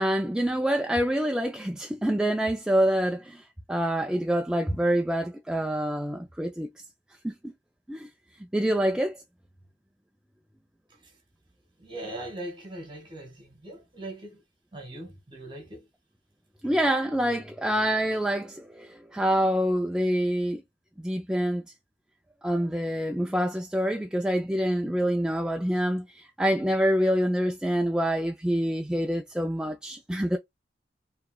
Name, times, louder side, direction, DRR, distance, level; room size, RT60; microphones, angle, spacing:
voice 1, 0.0-6.7 7.2-7.5 7.9-8.1 8.5-9.2 16.6-20.6 21.0-21.6 22.4-30.4, equal, 5° right, 0.3 m, -26 dB
voice 2, 11.8-14.4 14.7-15.9, right 1 dB, 25° right, 1.5 m, -40 dB
4.5 x 3.1 x 2.2 m
head